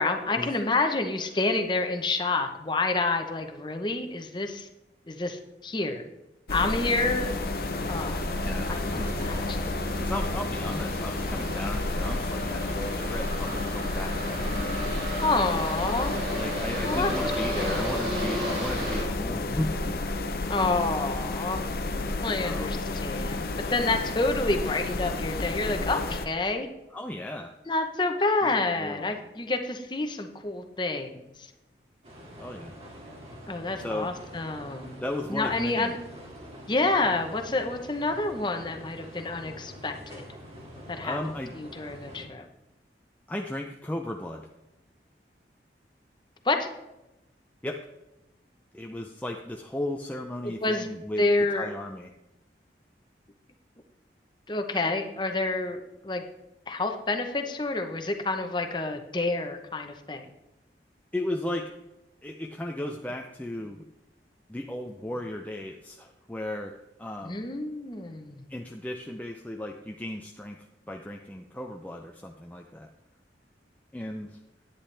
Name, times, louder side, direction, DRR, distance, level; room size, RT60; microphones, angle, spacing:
voice 1, 0.0-4.7 5.1-6.0 6.5-7.4 7.9-8.2 8.7-9.8 15.2-16.2 16.8-17.3 17.6-18.1 20.5-21.7 22.2-26.7 27.7-31.5 33.5-35.0 35.3-36.0 36.7-40.3 40.9-41.2 41.5-42.5 46.4-46.7 50.4-50.9 51.2-51.7 54.5-56.2 56.7-60.3 67.2-68.4, left 2 dB, 25° left, 6 dB, 0.8 m, -28 dB
sound 1, 6.5-26.3, left 2 dB, 55° left, 0.7 m, -31 dB
sound 2, 6.7-19.0, equal, 65° right, 2.9 m, -35 dB
voice 2, 8.4-9.2 10.0-14.5 16.3-19.7 22.4-22.7 26.9-27.5 28.4-29.2 32.4-32.7 33.8-34.1 35.0-35.9 41.0-41.5 43.3-44.5 47.6-47.8 48.7-51.3 51.5-52.1 61.1-61.7 62.2-63.8 64.5-67.5 68.5-70.6 70.9-72.9 73.9-74.4, left 1 dB, 10° left, 1 dB, 0.5 m, -35 dB
sound 3, 32.0-42.3, equal, 35° right, 2.2 m, -45 dB
10.5 x 10.0 x 3.3 m, 0.94 s
head